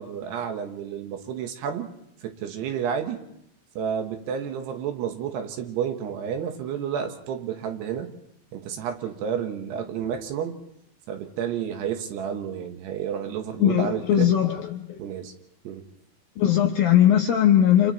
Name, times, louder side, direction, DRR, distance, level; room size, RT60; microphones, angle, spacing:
voice 1, 0.0-1.9 2.2-3.3 3.8-8.1 8.5-10.6 11.1-14.3 15.0-15.3 15.6-15.8, right 8 dB, 70° right, 5 dB, 3.2 m, -30 dB
voice 2, 13.6-15.0 16.4-17.9, left 10 dB, 75° left, 3 dB, 2.2 m, -19 dB
30.0 x 27.5 x 3.2 m, 0.76 s
omnidirectional pair, 5.3 m